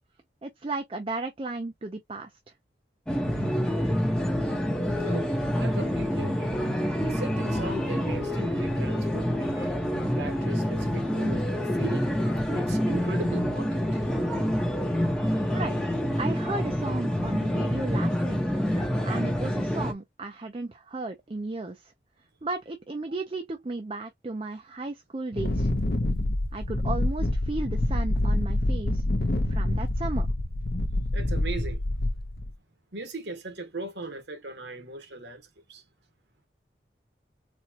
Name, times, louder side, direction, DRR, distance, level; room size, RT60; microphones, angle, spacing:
voice 1, 0.4-2.3 15.5-15.8 16.2-18.6 19.0-21.9 22.4-25.7 26.5-29.0 29.5-30.3, right 2 dB, 30° right, 0.5 m, -34 dB
sound 1, 3.1-19.9, equal, 5° left, 0.8 m, -27 dB
voice 2, 4.9-15.6 31.1-31.8 32.9-35.8, right 2 dB, 85° right, 1.3 m, -39 dB
Wind, 25.3-32.5, left 1 dB, 55° left, 0.7 m, -26 dB
4.2 x 2.2 x 2.7 m
head